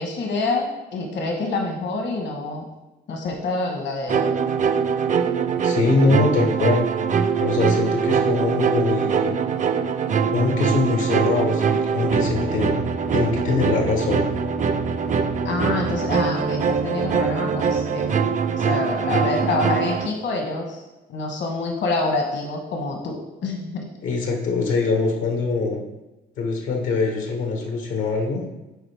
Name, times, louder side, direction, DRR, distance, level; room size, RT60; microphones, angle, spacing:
voice 1, 0.0-2.7 3.1-4.2 15.4-18.0 18.6-23.9, left 3 dB, 65° left, 2 dB, 1.2 m, -27 dB
sound 1, 4.1-20.1, right 6 dB, 40° right, 0.4 m, -23 dB
voice 2, 5.6-6.8 7.4-9.4 10.3-12.9 13.1-14.2 24.0-25.8 26.4-28.4, left 3 dB, 90° left, 1 dB, 1.3 m, -23 dB
9.9 x 4.2 x 3.4 m, 1.0 s
cardioid pair, 90°, 20 cm